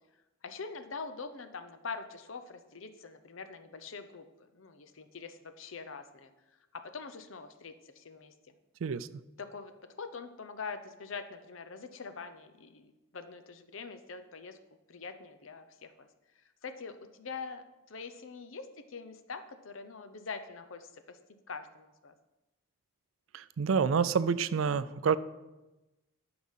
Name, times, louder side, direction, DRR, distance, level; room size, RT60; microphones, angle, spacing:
voice 1, 0.4-4.3 4.5-6.3 6.7-8.3 9.4-14.6 14.9-16.1 16.6-21.2 21.5-22.1, left 4 dB, 70° left, 9 dB, 0.8 m, -44 dB
voice 2, 23.3-25.2, right 6 dB, 75° right, 16 dB, 0.4 m, -28 dB
12.0 x 4.9 x 5.6 m, 1.0 s
head